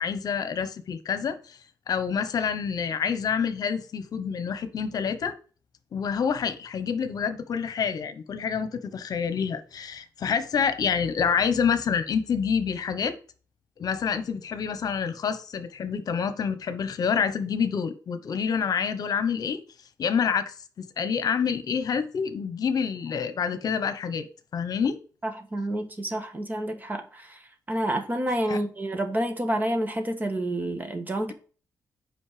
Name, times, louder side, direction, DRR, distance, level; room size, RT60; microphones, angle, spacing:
voice 1, 0.0-1.6 1.9-5.3 5.9-13.2 13.8-19.6 20.0-24.3 24.5-25.0 28.5-28.6, left 6 dB, 60° left, 1.0 m, -27 dB
voice 2, 25.2-27.4 27.7-31.3, right 1 dB, 25° right, 1.5 m, -29 dB
8.6 x 5.3 x 5.0 m
cardioid pair, 115°, 7 cm